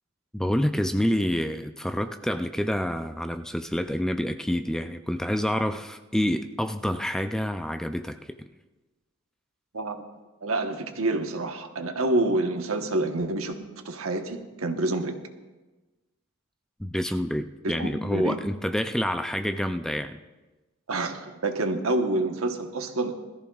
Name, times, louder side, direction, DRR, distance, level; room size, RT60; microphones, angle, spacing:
voice 1, 0.3-8.4 16.8-20.2, equal, 5° left, 8 dB, 0.3 m, -28 dB
voice 2, 10.4-15.2 17.6-18.4 20.9-23.1, right 2 dB, 80° right, 5 dB, 1.2 m, -28 dB
21.0 x 14.0 x 2.4 m, 1.2 s
head